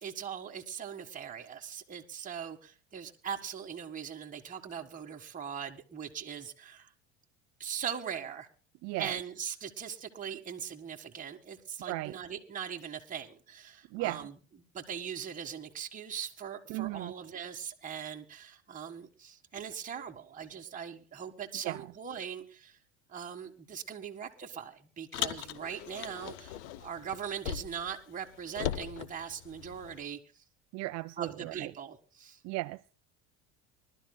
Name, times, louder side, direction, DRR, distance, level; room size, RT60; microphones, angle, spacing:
voice 1, 0.0-6.9 7.6-8.5 9.0-14.3 14.7-22.8 23.1-30.2 31.2-32.4, right 8 dB, 25° right, 1.6 m, -40 dB
voice 2, 8.8-9.2 11.9-12.2 13.9-14.3 16.7-17.1 21.6-21.9 30.7-31.7 32.4-32.8, right 21 dB, 55° right, 0.5 m, -36 dB
Car, 25.1-27.9 28.2-30.0, left 12 dB, 80° left, 0.8 m, -39 dB
24.5 x 12.0 x 2.2 m
supercardioid pair, 90°, 33 cm